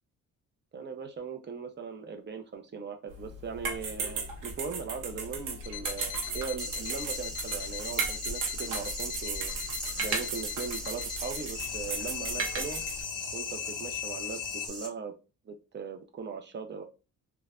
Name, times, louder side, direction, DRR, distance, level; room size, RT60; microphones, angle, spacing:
voice 1, 0.7-9.5 10.0-12.8 13.3-15.1 15.5-16.8, right 5 dB, 35° right, 5 dB, 0.7 m, -39 dB
sound 1, 3.1-13.0, right 4 dB, 90° right, 0.8 m, -36 dB
sound 2, 5.6-14.7, left 11 dB, 80° left, 0.5 m, -39 dB
sound 3, 6.6-14.9, equal, 5° left, 1.3 m, -41 dB
3.1 x 2.2 x 2.4 m, 0.31 s
cardioid pair, 90°, 30 cm